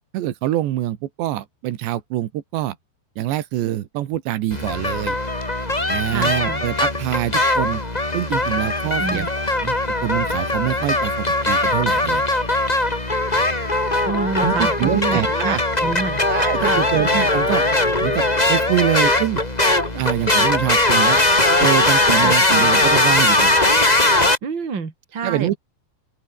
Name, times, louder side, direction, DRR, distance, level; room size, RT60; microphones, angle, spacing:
voice 1, 0.1-2.8 3.2-5.2 5.9-7.8 8.1-9.3 9.6-9.8 10.0-12.2 14.4-15.6 16.3-17.6 18.0-18.2 18.5-19.4 19.9-21.3 21.6-23.6 25.2-25.6, right 13 dB, 90° right, 3.8 m, -24 dB
sound 1, 4.5-24.4, left 2 dB, 10° left, 2.5 m, -19 dB
voice 2, 6.1-6.6 9.0-9.3 14.1-16.2 16.5-16.9 22.2-22.3 24.4-25.6, right 5 dB, 30° right, 3.6 m, -27 dB
open air
omnidirectional pair, 4.9 m